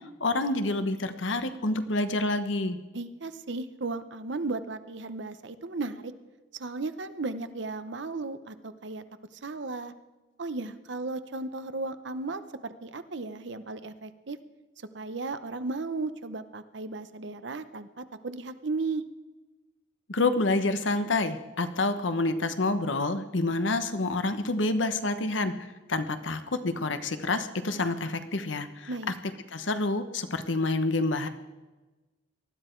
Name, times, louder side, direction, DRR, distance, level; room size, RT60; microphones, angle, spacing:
voice 1, 0.2-2.8 20.1-25.5 25.9-28.9 29.5-31.3, left 2 dB, 80° left, 10 dB, 1.1 m, -28 dB
voice 2, 2.9-6.1 6.6-9.0 9.4-9.9 10.4-14.4 14.9-19.0 28.9-29.1, right 3 dB, 70° right, 12 dB, 0.8 m, -35 dB
19.5 x 12.5 x 4.5 m, 1.2 s
head